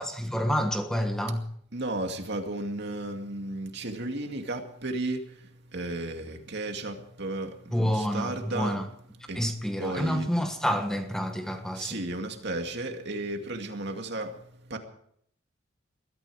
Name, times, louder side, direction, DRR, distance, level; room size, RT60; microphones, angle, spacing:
voice 1, 0.0-1.5 7.7-8.9 9.3-12.0, equal, 5° left, 1.4 m, -28 dB
voice 2, 1.7-8.8 9.3-9.4 9.8-10.3 11.7-14.4 14.7-14.8, right 2 dB, 60° right, 2.3 m, -34 dB
21.0 x 13.5 x 4.9 m
head